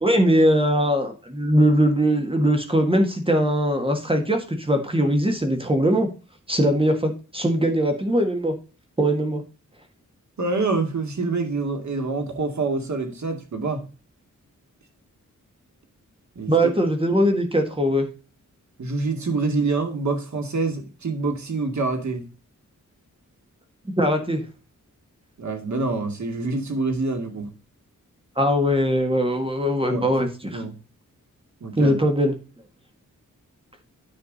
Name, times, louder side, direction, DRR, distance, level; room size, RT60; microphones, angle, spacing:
voice 1, 0.0-6.1 6.5-8.5 9.0-9.4 16.5-18.1 24.0-24.4 28.4-30.6 31.8-32.3, equal, 15° right, 4 dB, 1.6 m, -21 dB
voice 2, 10.4-13.8 16.4-16.5 18.8-22.2 25.4-27.5 29.9-30.1 30.5-30.7 31.6-31.9, right 3 dB, 60° right, 5 dB, 2.3 m, -26 dB
10.0 x 5.9 x 4.0 m, 0.33 s
wide cardioid pair, 150°, 32 cm